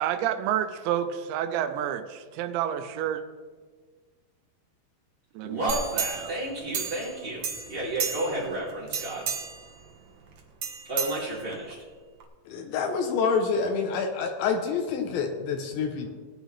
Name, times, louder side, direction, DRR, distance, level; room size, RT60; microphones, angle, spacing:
voice 1, 0.0-3.2 5.3-5.7, right 10 dB, 90° right, 8 dB, 2.9 m, -29 dB
voice 2, 5.4-9.3 10.8-11.8, right 1 dB, 25° right, -7 dB, 1.4 m, -32 dB
sound 1, 5.7-7.2 7.4-8.5 8.9-9.7 10.6-11.7 12.2-12.3, right 6 dB, 65° right, 1.7 m, -32 dB
voice 3, 12.5-16.1, left 5 dB, 80° left, 3 dB, 3.2 m, -27 dB
18.0 x 10.0 x 3.3 m, 1.5 s
omnidirectional pair, 5.2 m